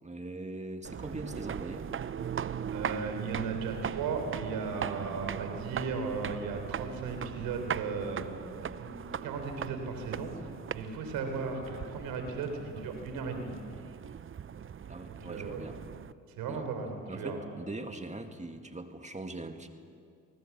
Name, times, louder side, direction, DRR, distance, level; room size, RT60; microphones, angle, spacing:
voice 1, 0.0-1.9 14.9-15.8 16.5-16.7 17.1-19.7, right 2 dB, 20° right, 6 dB, 2.1 m, -41 dB
sound 1, 0.8-16.1, right 8 dB, 40° right, 0.7 m, -39 dB
voice 2, 2.7-8.3 8.6-8.9 9.2-13.5 15.1-15.6 16.3-17.4, right 4 dB, 80° right, 5 dB, 3.9 m, -36 dB
26.0 x 19.0 x 7.4 m, 2.3 s
supercardioid pair, 60°, 33 cm